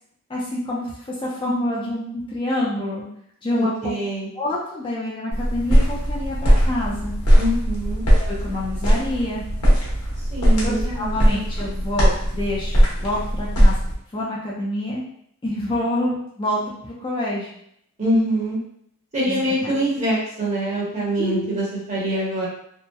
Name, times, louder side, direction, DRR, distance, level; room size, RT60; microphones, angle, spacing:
voice 1, 0.3-0.9 1.2-3.1 3.4-3.7 4.4-7.1 8.2-9.5 10.6-13.7 14.1-15.0 15.4-17.5 19.3-19.4 21.2-21.5, left 1 dB, 20° left, -6 dB, 0.4 m, -27 dB
voice 2, 3.5-4.3 7.4-8.0 10.3-11.4 18.0-18.6 19.1-22.5, right 1 dB, 30° right, -6 dB, 0.9 m, -24 dB
sound 1, 5.3-13.9, equal, 80° left, 0.9 m, -19 dB
2.8 x 2.0 x 2.2 m, 0.70 s
head